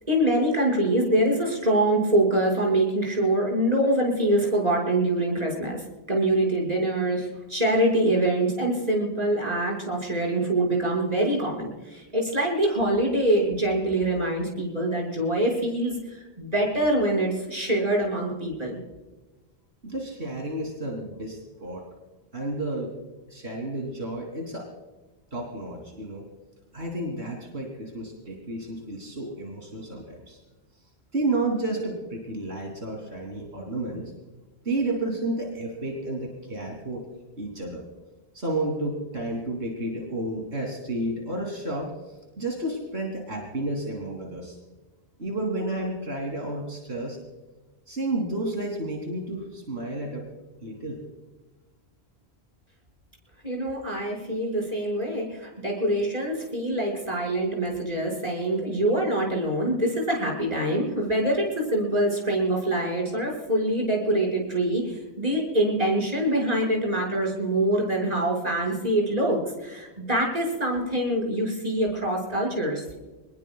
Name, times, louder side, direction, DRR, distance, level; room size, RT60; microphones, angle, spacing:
voice 1, 0.1-18.8 53.4-72.8, right 1 dB, 40° right, -2 dB, 5.9 m, -25 dB
voice 2, 19.8-21.8 22.3-22.9 23.3-24.7 25.3-26.3 26.7-30.4 31.1-34.1 34.6-37.0 37.4-37.8 38.3-44.6 45.2-47.2 47.9-50.3 50.6-51.0, right 2 dB, 80° right, 0 dB, 3.3 m, -31 dB
27.0 x 20.5 x 2.3 m, 1.2 s
omnidirectional pair, 1.1 m